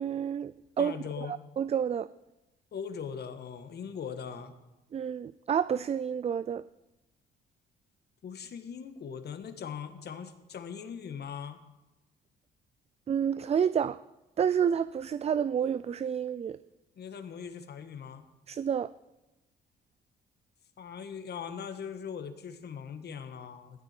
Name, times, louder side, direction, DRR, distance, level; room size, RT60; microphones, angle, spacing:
voice 1, 0.0-0.9 1.3-2.1 4.9-6.6 13.1-14.0 14.4-16.6 18.5-18.9, right 8 dB, 30° right, 0.4 m, -29 dB
voice 2, 0.8-1.3 2.7-4.5 8.2-11.6 16.9-18.2 20.8-23.8, left 7 dB, 55° left, 1.5 m, -40 dB
15.0 x 12.5 x 4.4 m
cardioid pair, 90°, 20 cm